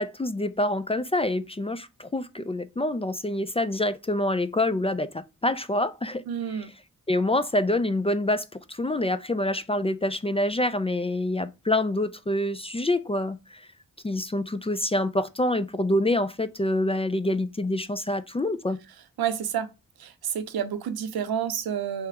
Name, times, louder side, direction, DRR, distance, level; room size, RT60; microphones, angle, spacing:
voice 1, 0.0-6.2 7.1-13.6 14.0-18.8, left 1 dB, 15° left, 0.3 m, -26 dB
voice 2, 6.3-6.7 19.2-19.7 20.0-22.1, right 9 dB, 80° right, 0.6 m, -29 dB
3.3 x 2.9 x 4.7 m
cardioid pair, 60°, 36 cm